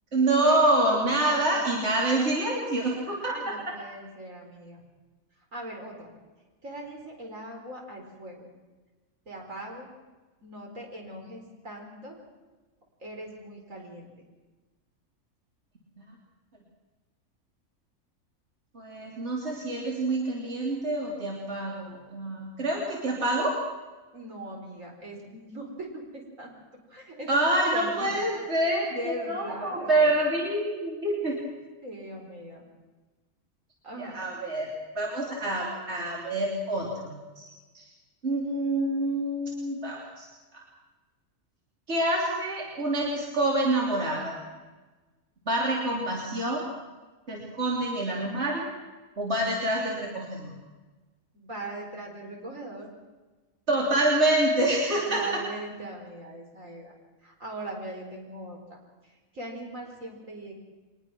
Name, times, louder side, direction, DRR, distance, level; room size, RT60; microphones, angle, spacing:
voice 1, 0.1-3.5 18.7-23.6 27.3-31.4 34.0-34.7 34.9-37.4 37.7-37.8 38.2-40.3 40.5-40.6 41.9-44.4 45.5-46.6 47.3-48.7 49.2-50.5 53.7-55.4, right 1 dB, 55° right, -2 dB, 3.5 m, -27 dB
voice 2, 1.2-1.6 3.2-4.8 5.5-6.1 6.6-8.5 9.3-9.9 10.4-12.2 13.0-14.1 24.1-26.5 26.9-28.2 28.9-30.1 31.8-32.6 33.8-34.2 51.3-52.9 54.9-56.9 57.2-58.6 59.0-60.5, right 1 dB, 70° right, 0 dB, 4.9 m, -40 dB
23.5 x 20.0 x 6.1 m, 1.2 s
omnidirectional pair, 1.4 m